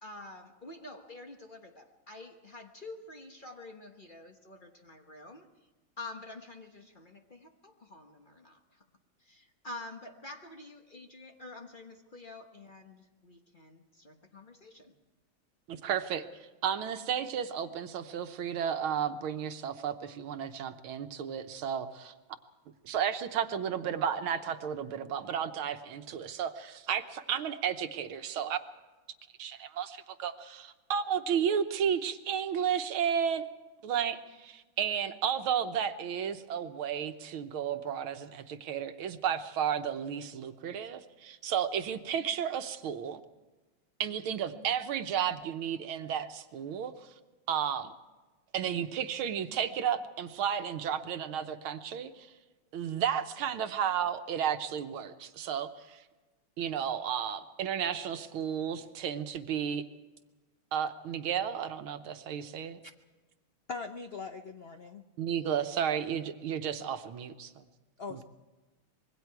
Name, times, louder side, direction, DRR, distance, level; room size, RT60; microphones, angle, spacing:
voice 1, 0.0-5.5 6.0-8.8 9.2-14.9, left 2 dB, 30° left, 4 dB, 1.1 m, -48 dB
voice 2, 15.7-16.3 16.6-22.1 22.8-28.6 29.4-33.5 33.8-43.2 44.0-47.1 47.5-47.9 48.5-52.3 52.7-56.0 56.6-59.8 60.7-62.8 65.2-67.7 68.1-68.2, right 8 dB, 90° right, 9 dB, 1.8 m, -33 dB
voice 3, 63.7-65.0 68.0-68.2, left 4 dB, 70° left, 7 dB, 0.5 m, -41 dB
25.5 x 21.5 x 4.7 m, 1.2 s
omnidirectional pair, 2.2 m